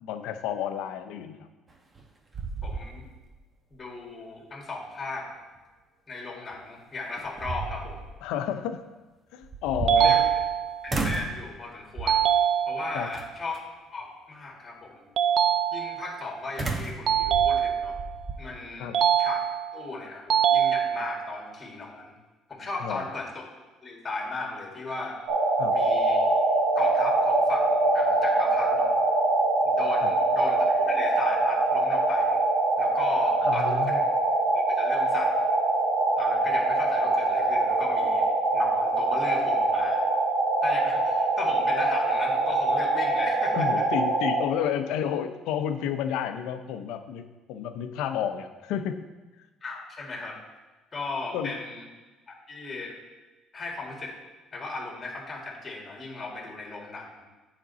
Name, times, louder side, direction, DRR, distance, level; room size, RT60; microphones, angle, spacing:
voice 1, 0.0-1.4 8.2-8.8 9.3-10.2 12.9-13.1 18.8-19.0 22.8-23.1 25.6-25.8 30.0-30.1 33.4-34.0 43.5-49.0 51.3-51.6, left 9 dB, 80° left, 9 dB, 0.6 m, -31 dB
sound 1, 1.7-2.1 2.3-3.4 3.7-3.8 6.5-6.6 7.2-8.1 9.4-10.5 10.9-11.4 12.0-12.3 13.1-13.6 16.6-18.4, right 3 dB, 25° right, 0.9 m, -33 dB
voice 2, 2.6-3.1 3.7-5.3 6.1-8.0 10.0-10.2 10.8-12.2 12.7-13.6 13.9-15.0 15.7-18.0 18.4-18.9 19.2-19.4 19.7-22.1 22.5-23.4 23.8-25.2 25.7-26.2 26.8-28.9 29.6-32.4 32.8-34.0 34.5-35.4 36.2-38.3 38.5-40.0 40.6-43.8 49.6-50.4 50.9-51.8 52.3-53.0 53.5-54.1 54.5-57.2, left 3 dB, 30° left, 0 dB, 1.9 m, -36 dB
sound 2, 9.9-10.9 12.1-13.1 15.2-16.2 17.1-18.1 18.9-19.8 20.3-21.3, right 9 dB, 50° right, 0.3 m, -23 dB
sound 3, 25.3-44.4, right 2 dB, 75° right, 1.4 m, -24 dB
8.7 x 5.2 x 4.0 m, 1.2 s
cardioid pair, 110°, 0 cm